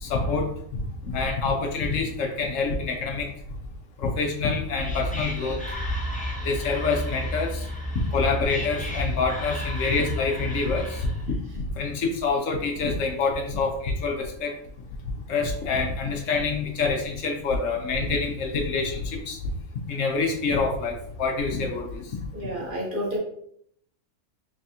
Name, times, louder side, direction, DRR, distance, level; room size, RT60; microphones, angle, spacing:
voice 1, 0.0-0.8 1.1-3.3 4.0-5.6 6.4-7.6 8.1-11.1 11.8-14.6 15.3-19.4 19.9-22.0, left 4 dB, 70° left, 2 dB, 1.0 m, -26 dB
Whispering, 4.4-11.3, equal, 10° left, 0.4 m, -32 dB
voice 2, 22.3-23.2, equal, 45° right, -3 dB, 1.0 m, -30 dB
3.5 x 3.3 x 2.7 m, 0.67 s
omnidirectional pair, 1.4 m